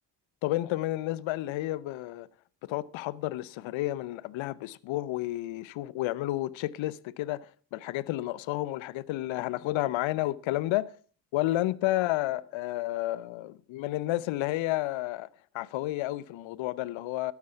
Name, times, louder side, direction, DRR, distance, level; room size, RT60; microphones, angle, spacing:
voice 1, 0.4-2.3 2.6-10.9 11.3-15.3 15.5-17.3, left 16 dB, 65° left, 0.8 m, -31 dB
12.5 x 9.5 x 5.7 m
hypercardioid pair, 55°, 49 cm